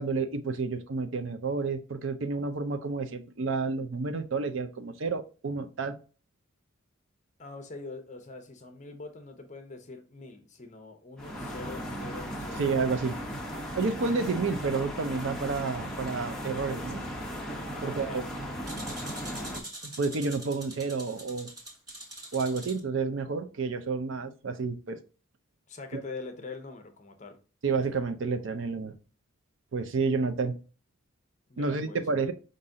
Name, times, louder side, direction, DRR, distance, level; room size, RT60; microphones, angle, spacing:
voice 1, 0.0-6.0 12.6-13.2 13.7-17.0 17.8-18.2 19.8-21.5 22.3-25.0 25.9-26.0 27.6-28.9 29.7-30.5 31.6-32.3, right 4 dB, 65° right, 0.5 m, -30 dB
voice 2, 7.4-12.7 17.7-18.3 25.7-27.4 31.5-32.0, left 3 dB, 35° left, 0.7 m, -43 dB
sound 1, 11.2-19.6, equal, 5° left, 0.8 m, -37 dB
sound 2, 18.7-22.8, right 1 dB, 20° right, 1.3 m, -43 dB
5.5 x 2.6 x 3.7 m
head